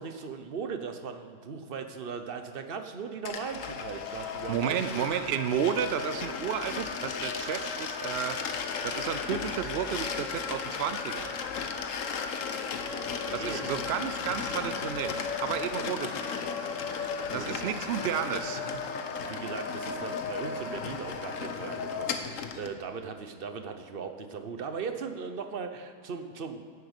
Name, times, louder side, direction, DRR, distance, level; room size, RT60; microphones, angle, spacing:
voice 1, 0.0-5.1 12.9-13.6 17.3-17.7 19.2-26.6, right 5 dB, 40° right, 7 dB, 0.9 m, -38 dB
sound 1, 3.3-22.7, left 5 dB, 55° left, 1.2 m, -35 dB
voice 2, 4.5-11.4 13.3-16.4 17.3-19.0, right 9 dB, 85° right, 10 dB, 0.5 m, -32 dB
11.5 x 7.9 x 8.2 m, 2.3 s
omnidirectional pair, 1.7 m